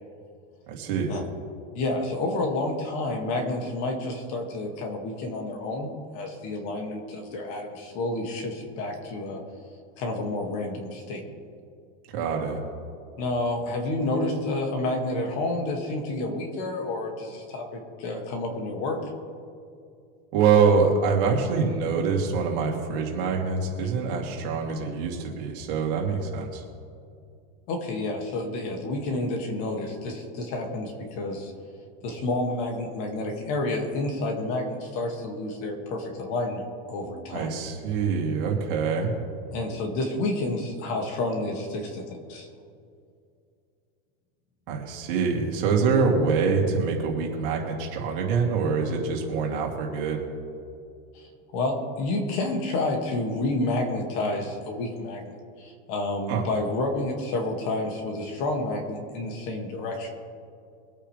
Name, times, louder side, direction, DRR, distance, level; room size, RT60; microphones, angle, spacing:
voice 1, 0.7-1.2 12.1-12.6 20.3-26.6 37.3-39.5 44.7-50.2 56.3-56.4, right 5 dB, 55° right, 0 dB, 2.8 m, -25 dB
voice 2, 1.7-9.4 10.0-11.2 13.2-19.0 27.7-31.5 32.0-37.6 39.5-42.5 51.1-51.3 51.5-55.2 55.6-60.1, left 2 dB, 45° left, 2 dB, 2.2 m, -29 dB
23.5 x 9.0 x 3.4 m, 2.4 s
supercardioid pair, 165°, 32 cm